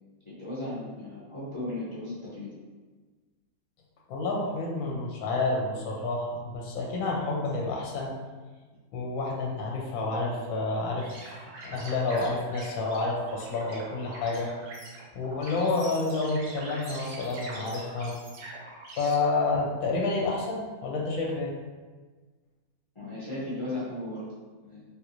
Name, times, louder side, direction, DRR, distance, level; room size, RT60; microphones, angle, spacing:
voice 1, 0.3-2.5 23.0-24.2 24.6-24.8, left 1 dB, 35° left, -9 dB, 0.5 m, -36 dB
voice 2, 4.1-8.1 8.9-11.4 11.6-14.5 15.1-18.1 18.9-21.5, left 3 dB, 70° left, -2 dB, 1.0 m, -29 dB
sound 1, 11.0-19.1, right 2 dB, 85° right, 1.3 m, -44 dB
3.5 x 2.4 x 2.9 m, 1.3 s
omnidirectional pair, 1.6 m